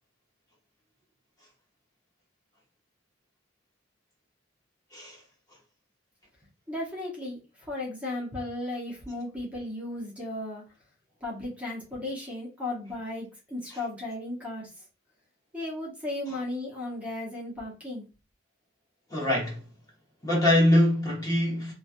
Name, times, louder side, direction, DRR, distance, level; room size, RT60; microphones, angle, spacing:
voice 1, 4.9-5.2 19.1-19.6 20.2-21.7, left 1 dB, 20° left, 1.0 m, -23 dB
voice 2, 6.7-10.6 11.2-14.7 15.5-18.1, left 1 dB, 5° right, 0.9 m, -35 dB
3.0 x 2.3 x 2.5 m
head